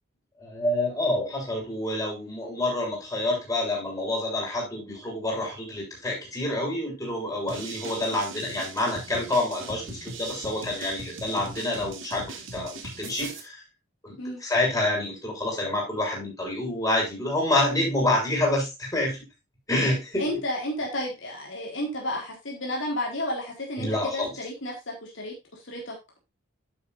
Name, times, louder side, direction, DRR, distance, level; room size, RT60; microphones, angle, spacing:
voice 1, 0.4-13.6 14.0-19.2 19.7-20.3 23.8-24.3, left 1 dB, 15° left, -1 dB, 6.8 m, -27 dB
sound 1, 7.5-13.4, right 3 dB, 75° right, 2.7 m, -40 dB
voice 2, 20.2-25.3 25.6-26.0, left 1 dB, 70° left, -1 dB, 4.1 m, -32 dB
11.5 x 8.2 x 2.6 m, 0.25 s
head